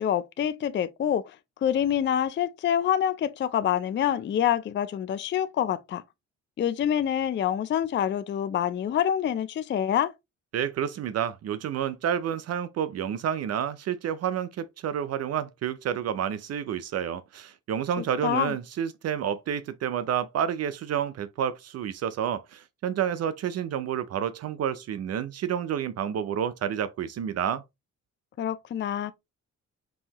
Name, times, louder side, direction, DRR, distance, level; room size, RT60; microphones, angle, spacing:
voice 1, 0.0-6.0 6.6-10.1 18.2-18.5 28.4-29.1, left 10 dB, 40° left, 0.4 m, -26 dB
voice 2, 10.5-27.6, right 9 dB, 55° right, 0.5 m, -29 dB
5.4 x 2.7 x 2.9 m
cardioid pair, 90°, 30 cm